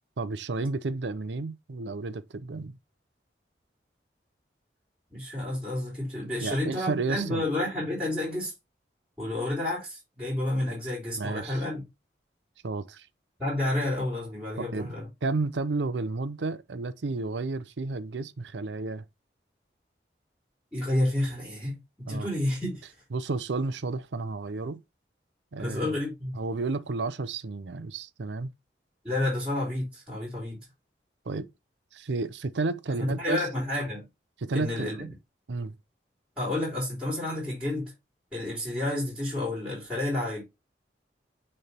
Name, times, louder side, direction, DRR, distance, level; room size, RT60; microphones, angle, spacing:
voice 1, 0.2-2.8 6.4-7.5 11.2-11.7 12.6-13.1 14.6-14.9 15.2-19.0 22.1-22.3 23.1-24.8 25.5-25.9 26.3-28.5 31.3-31.5 31.9-33.5 34.4-35.1 35.5-35.7, right 3 dB, 85° right, 0.6 m, -32 dB
voice 2, 5.1-8.5 9.2-11.8 13.4-15.1 20.7-21.8 22.1-22.9 25.6-26.3 29.0-30.6 33.0-34.0 34.5-35.1 36.4-37.9 38.3-40.4, left 1 dB, 5° right, 3.3 m, -30 dB
6.6 x 3.3 x 4.2 m
head